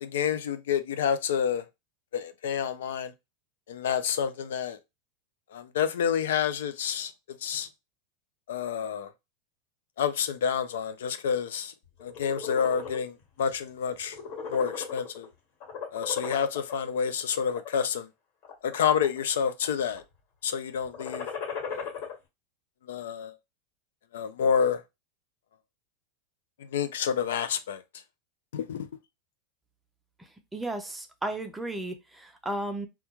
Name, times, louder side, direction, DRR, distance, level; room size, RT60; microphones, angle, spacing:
voice 1, 0.0-1.6 2.1-3.1 3.7-4.8 5.5-7.1 7.4-7.7 8.5-9.1 10.0-11.7 12.0-14.2 14.5-15.3 15.9-18.1 18.6-20.0 20.4-21.3 21.7-21.9 22.9-23.4 24.1-24.8 26.6-27.8 28.5-28.9, left 7 dB, 80° left, 0.3 m, -28 dB
sound 1, 12.0-13.0 13.5-13.7 14.0-15.3 15.6-16.7 17.4-17.8 18.4-19.2 19.5-20.0 20.8-22.1, left 6 dB, 60° left, 1.2 m, -36 dB
voice 2, 30.5-32.9, right 1 dB, 10° right, 0.4 m, -34 dB
2.2 x 2.2 x 2.9 m
hypercardioid pair, 110°, 0 cm